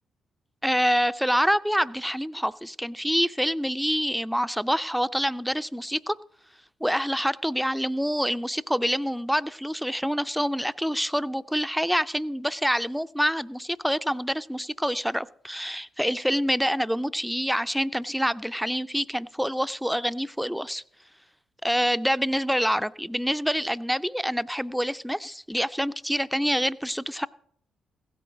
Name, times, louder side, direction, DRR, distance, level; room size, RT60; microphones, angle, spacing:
voice 1, 0.6-6.2 6.8-20.8 21.6-27.3, equal, ahead, 15 dB, 0.5 m, -26 dB
16.0 x 8.5 x 5.1 m, 0.65 s
hypercardioid pair, 50°, 0 cm